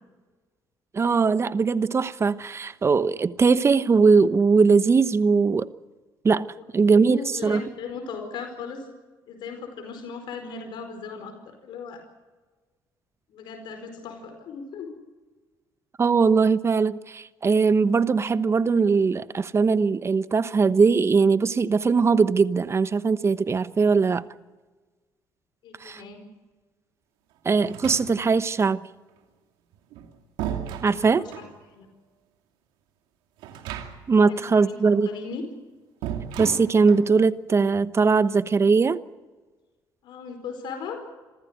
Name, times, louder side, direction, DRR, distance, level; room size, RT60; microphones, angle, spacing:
voice 1, 0.9-5.7 6.2-6.5 6.7-7.6 16.0-24.3 25.8-26.0 27.4-28.8 30.8-31.2 34.1-35.1 36.4-39.0, right 4 dB, 35° right, 1.0 m, -20 dB
voice 2, 6.8-8.8 9.3-12.0 13.3-14.9 25.6-26.2 30.7-31.9 34.3-35.4 40.0-41.0, left 5 dB, 70° left, 4.7 m, -38 dB
sound 1, 27.6-28.5 29.7-31.6 33.4-34.2 34.5-34.6 36.0-37.1, right 9 dB, 85° right, 2.5 m, -35 dB
27.0 x 15.0 x 8.1 m
cardioid pair, 85°, 8 cm